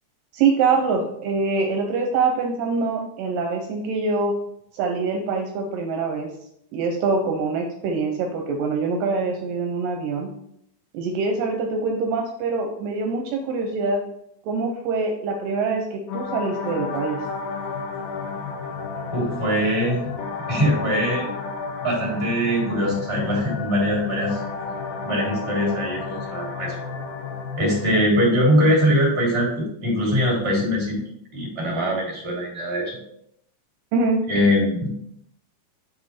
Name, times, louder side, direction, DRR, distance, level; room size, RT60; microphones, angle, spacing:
voice 1, 0.3-4.4 4.7-6.3 6.7-10.3 10.9-14.0 14.4-17.2 33.9-34.3, right 4 dB, 75° right, 2 dB, 2.3 m, -24 dB
sound 1, 16.1-28.1, left 4 dB, 85° left, 2.7 m, -32 dB
voice 2, 19.1-20.0 20.5-21.2 21.8-24.4 25.0-26.7 27.6-31.0 31.3-33.0 34.3-34.9, equal, 20° right, -3 dB, 2.5 m, -22 dB
6.3 x 4.9 x 4.2 m, 0.75 s
omnidirectional pair, 4.2 m